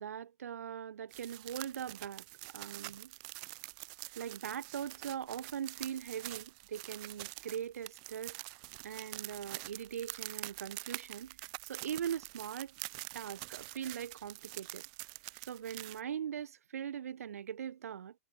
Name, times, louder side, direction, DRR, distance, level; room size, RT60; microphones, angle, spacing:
voice 1, 0.0-3.1 4.2-8.4 8.8-12.7 13.1-14.9 15.4-18.2, right 9 dB, 70° right, 6.2 m, -41 dB
sound 1, 1.1-16.0, right 31 dB, 30° right, 1.6 m, -46 dB
hypercardioid pair, 170°, 8 cm